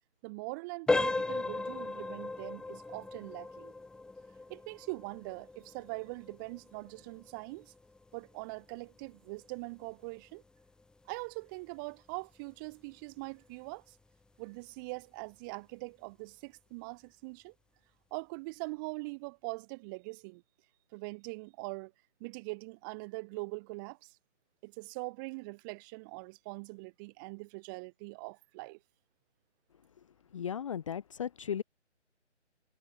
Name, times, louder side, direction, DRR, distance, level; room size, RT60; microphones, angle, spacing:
voice 1, 0.2-3.7 4.5-7.7 8.1-10.4 11.1-14.0 14.4-17.5 18.1-20.4 20.9-21.9 22.2-24.2 24.6-28.8, right 28 dB, 15° right, 5.9 m, -42 dB
sound 1, 0.9-11.5 11.9-12.1 12.7-12.8 13.3-13.5, left 3 dB, ahead, 3.8 m, -38 dB
voice 2, 30.3-31.6, left 8 dB, 25° left, 1.4 m, -36 dB
figure-of-eight pair, 145°, 35 cm